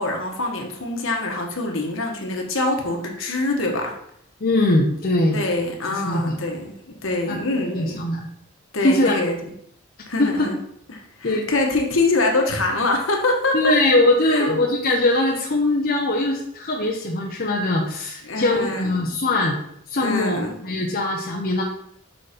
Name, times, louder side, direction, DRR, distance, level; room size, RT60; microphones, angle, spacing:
voice 1, 0.0-3.9 5.3-8.0 8.7-9.3 10.1-10.6 10.9-13.7 14.3-14.5 18.2-19.1 20.0-20.6, left 2 dB, 70° left, 2 dB, 1.3 m, -24 dB
voice 2, 4.4-5.4 5.8-6.4 7.3-7.4 7.7-8.3 8.8-9.1 10.2-10.5 11.2-11.5 13.5-19.6 19.9-21.6, left 2 dB, 45° left, -1 dB, 0.7 m, -21 dB
5.7 x 4.3 x 5.0 m, 0.72 s
head